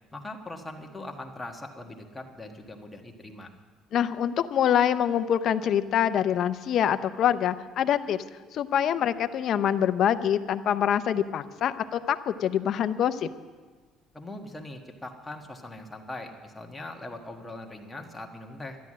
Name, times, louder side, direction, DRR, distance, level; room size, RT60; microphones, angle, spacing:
voice 1, 0.1-3.5 14.1-18.8, left 2 dB, 10° left, 1 dB, 1.4 m, -41 dB
voice 2, 3.9-8.2 8.5-13.3, left 9 dB, 45° left, 11 dB, 0.6 m, -25 dB
13.0 x 11.0 x 7.5 m, 1.4 s
cardioid pair, 150°, 0 cm